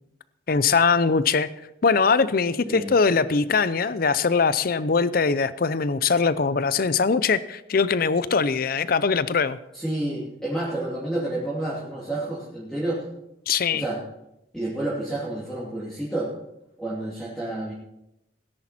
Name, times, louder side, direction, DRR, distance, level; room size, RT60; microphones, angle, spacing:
voice 1, 0.5-1.5 1.8-9.6 13.5-13.8, left 5 dB, 55° left, 15 dB, 0.6 m, -21 dB
voice 2, 9.7-13.0 13.7-14.0 14.5-16.3 16.8-17.7, right 1 dB, 5° left, -8 dB, 2.8 m, -29 dB
17.5 x 10.5 x 4.3 m, 0.87 s
head